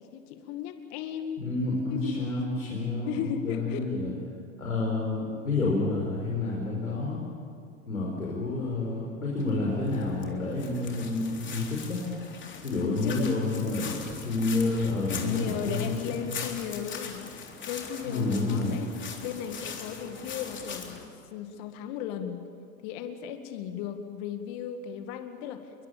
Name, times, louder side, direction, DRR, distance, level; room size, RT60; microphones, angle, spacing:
voice 1, 0.1-1.4 1.9-2.5 3.1-3.8 12.8-13.3 14.6-18.9 19.2-21.0 21.3-22.4 22.8-25.9, left 9 dB, 55° left, 7 dB, 2.2 m, -36 dB
voice 2, 1.4-4.1 4.6-7.2 7.9-12.0 12.6-16.0 16.2-16.3 18.0-18.9, left 2 dB, 85° left, -3 dB, 5.3 m, -29 dB
sound 1, 9.4-21.0, left 6 dB, 30° left, 3.8 m, -41 dB
29.0 x 23.5 x 7.3 m, 2.3 s
figure-of-eight pair, 85°, 40 cm